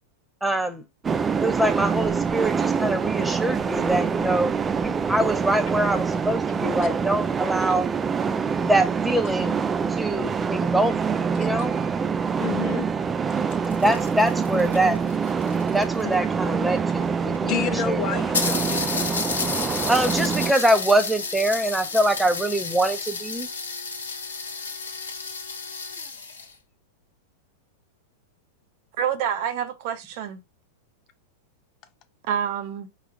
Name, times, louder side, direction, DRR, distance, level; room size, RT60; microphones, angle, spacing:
voice 1, 0.4-0.8 1.4-4.6 4.8-7.9 8.6-9.6 9.9-11.7 13.8-15.0 15.7-18.0 19.9-23.5, right 1 dB, 5° right, 0.7 m, -24 dB
sound 1, 1.0-20.5, right 6 dB, 20° right, 0.3 m, -25 dB
voice 2, 12.4-12.9 16.0-16.2 17.5-19.1, left 9 dB, 45° left, 0.6 m, -30 dB
sound 2, 13.4-16.1 17.0-17.1 17.3-17.4 17.8-17.9 18.3-26.5, left 4 dB, 85° left, 1.1 m, -31 dB
voice 3, 29.0-30.4 32.2-32.9, right 8 dB, 55° right, 0.8 m, -27 dB
4.9 x 2.4 x 3.5 m
hypercardioid pair, 105°, 0 cm